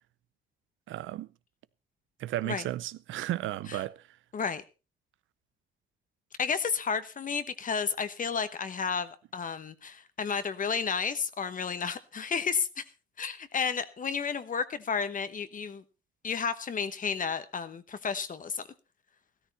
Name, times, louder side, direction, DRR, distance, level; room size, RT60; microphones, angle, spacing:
voice 1, 0.9-1.3 2.2-4.0, right 14 dB, 80° right, 0.6 m, -34 dB
voice 2, 4.3-4.6 6.4-12.8 13.2-15.8 16.2-18.7, left 6 dB, 40° left, 1.1 m, -32 dB
13.5 x 13.5 x 4.1 m
cardioid pair, 90°, 20 cm